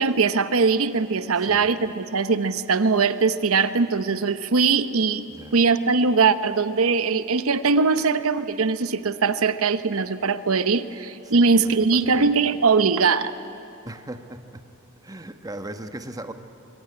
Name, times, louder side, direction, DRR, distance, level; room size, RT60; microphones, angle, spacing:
voice 1, 0.0-5.2 5.5-13.3, right 4 dB, 80° right, 12 dB, 0.9 m, -21 dB
voice 2, 1.4-1.8 5.3-5.5 11.2-12.3 13.8-14.6 15.0-16.3, right 1 dB, 20° right, 7 dB, 1.2 m, -38 dB
24.5 x 22.0 x 9.6 m, 2.9 s
head